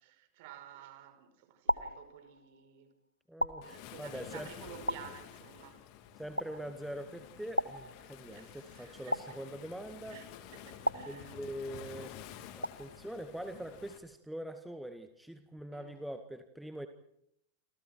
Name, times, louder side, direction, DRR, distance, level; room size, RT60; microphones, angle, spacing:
voice 1, 0.0-2.9 3.6-5.8 8.2-9.4 10.1-11.3 15.7-16.0, right 10 dB, 50° right, 5.4 m, -52 dB
sound 1, 0.5-1.0 1.7-2.6 3.4-4.3 4.9-5.7 6.4-7.0 7.6-8.5 9.1-10.0 10.8-11.8 12.6-13.2, equal, 90° left, 0.8 m, -37 dB
voice 2, 3.3-4.5 6.2-10.2 11.1-12.2 12.6-16.9, right 1 dB, 5° right, 1.9 m, -43 dB
Waves surf, 3.6-14.0, left 10 dB, 45° left, 3.3 m, -51 dB
28.5 x 27.5 x 4.6 m
figure-of-eight pair, 90°, 0 cm